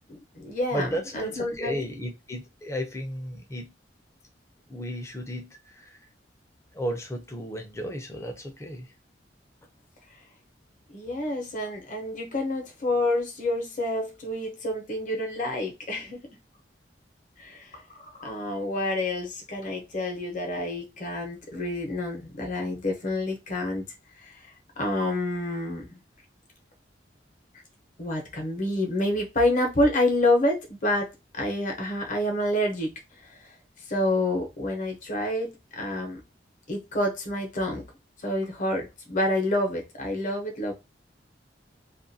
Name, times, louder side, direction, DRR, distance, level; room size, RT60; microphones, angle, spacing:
voice 1, 0.1-0.9 1.1-1.8 10.9-16.2 17.4-23.8 24.2-26.0 28.0-32.9 33.2-33.5 33.9-36.2 36.7-37.8 38.2-40.7, left 1 dB, 45° left, 0.9 m, -28 dB
voice 2, 0.7-3.7 4.7-6.0 6.7-8.9, equal, 15° left, 0.6 m, -34 dB
2.5 x 2.3 x 2.7 m
head